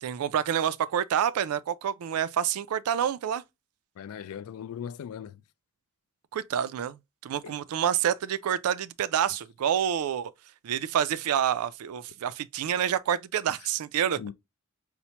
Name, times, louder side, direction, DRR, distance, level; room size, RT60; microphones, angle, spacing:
voice 1, 0.0-3.4 6.3-10.3 10.6-14.2, right 9 dB, 70° right, 0.3 m, -28 dB
voice 2, 4.0-5.4 7.4-7.6 14.2-14.3, left 8 dB, 70° left, 0.3 m, -39 dB
4.3 x 2.1 x 2.8 m
head